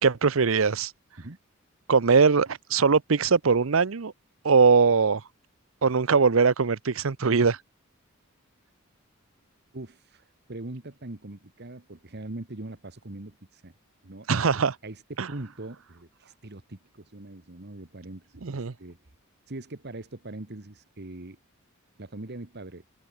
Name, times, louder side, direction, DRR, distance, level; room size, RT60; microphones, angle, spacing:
voice 1, 0.0-0.9 1.9-4.1 4.4-5.2 5.8-7.6 14.3-14.7 15.2-15.3 18.4-18.7, right 5 dB, 70° right, 0.7 m, -21 dB
voice 2, 9.7-13.7 14.0-19.0 19.5-21.4 22.0-22.8, right 2 dB, 50° right, 1.5 m, -41 dB
head